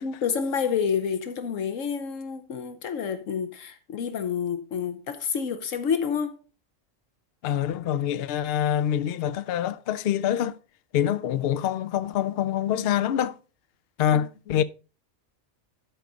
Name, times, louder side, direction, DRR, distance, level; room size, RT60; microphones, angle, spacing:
voice 1, 0.0-6.4 14.1-14.6, left 7 dB, 80° left, 1.2 m, -29 dB
voice 2, 7.4-10.6 10.9-13.4 14.0-14.6, left 10 dB, 60° left, 0.7 m, -25 dB
12.5 x 4.8 x 4.0 m
omnidirectional pair, 1.3 m